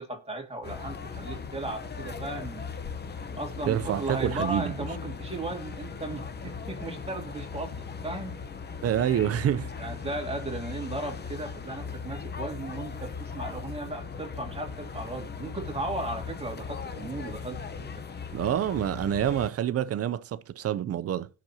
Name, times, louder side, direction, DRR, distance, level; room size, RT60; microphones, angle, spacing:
voice 1, 0.0-2.7 3.3-8.3 9.8-18.1, right 2 dB, 20° right, 2.3 m, -36 dB
sound 1, 0.6-19.5, left 5 dB, 35° left, 0.9 m, -38 dB
voice 2, 3.7-4.7 8.8-9.7 18.3-21.3, right 10 dB, 50° right, 0.6 m, -27 dB
17.0 x 6.0 x 2.8 m
cardioid pair, 90°, 30 cm